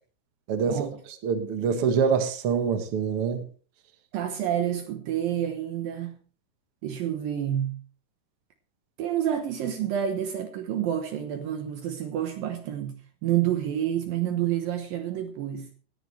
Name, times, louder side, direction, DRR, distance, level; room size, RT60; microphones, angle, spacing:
voice 1, 0.5-0.8 1.2-3.4, right 6 dB, 85° right, 1.2 m, -25 dB
voice 2, 4.1-6.1 6.8-7.8 9.0-13.0 13.2-15.7, right 10 dB, 70° right, 2.6 m, -28 dB
18.0 x 10.5 x 3.3 m
omnidirectional pair, 4.7 m